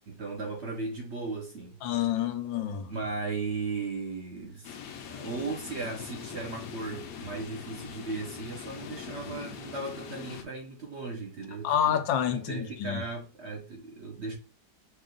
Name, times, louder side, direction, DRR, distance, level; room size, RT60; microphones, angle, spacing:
voice 1, 0.1-1.8 2.1-2.3 2.9-4.8 5.1-12.0 12.3-14.3, right 3 dB, 50° right, 0.8 m, -36 dB
voice 2, 1.8-2.9 11.6-13.0, left 9 dB, 85° left, 1.4 m, -28 dB
sound 1, 4.6-10.4, left 7 dB, 65° left, 1.0 m, -42 dB
5.5 x 2.3 x 3.8 m
omnidirectional pair, 2.0 m